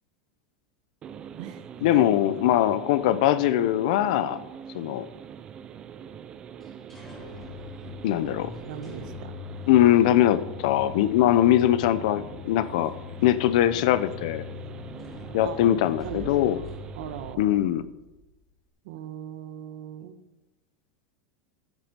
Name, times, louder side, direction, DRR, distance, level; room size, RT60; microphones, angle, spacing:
sound 1, 1.0-17.4, right 8 dB, 20° right, 0.5 m, -43 dB
voice 1, 1.8-4.4 4.7-5.1 8.0-8.5 9.7-12.9 13.2-14.4 15.3-16.6 17.4-17.8, left 12 dB, 60° left, 14 dB, 0.7 m, -21 dB
sound 2, 6.6-18.2, left 6 dB, 5° left, 3.3 m, -42 dB
voice 2, 8.7-9.3 15.4-16.7 17.0-17.5 18.8-20.2, right 9 dB, 65° right, 9 dB, 1.2 m, -39 dB
13.5 x 7.6 x 5.3 m, 1.0 s
supercardioid pair, 175°, 4 cm